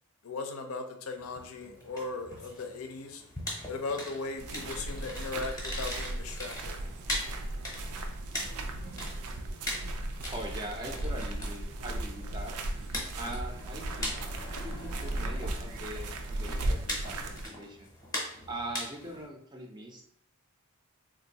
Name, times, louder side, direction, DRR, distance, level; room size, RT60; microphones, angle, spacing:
voice 1, 0.2-3.2 3.7-6.8, left 3 dB, 80° left, 5 dB, 0.5 m, -38 dB
sound 1, 1.2-19.3, left 1 dB, 15° left, 0.7 m, -41 dB
sound 2, 4.4-17.5, right 1 dB, 90° right, 0.4 m, -36 dB
voice 2, 10.3-12.6 13.2-14.2 14.5-17.9 18.5-20.0, right 1 dB, 20° right, 2 dB, 0.4 m, -42 dB
3.7 x 2.6 x 2.8 m, 0.66 s
head